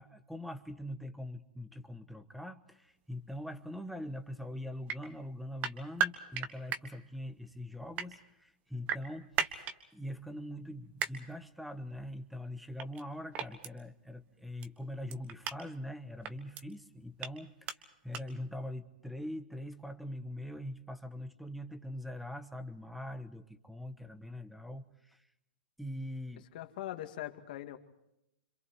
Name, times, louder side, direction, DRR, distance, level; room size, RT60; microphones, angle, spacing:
voice 1, 0.0-25.3 25.8-26.5, left 1 dB, ahead, 11 dB, 1.2 m, -43 dB
sound 1, 4.9-5.0 5.6-6.8 7.7-8.1 8.9-9.8 11.0-11.1 12.8-13.0 13.3-13.7 14.6-14.7 15.1-15.6 16.2-16.6 17.2-17.3 17.7-17.8 18.1-18.2, right 8 dB, 30° right, 1.4 m, -34 dB
voice 2, 26.5-27.8, left 14 dB, 55° left, 6 dB, 2.3 m, -41 dB
27.0 x 26.5 x 4.7 m, 0.84 s
hypercardioid pair, 150°, 5 cm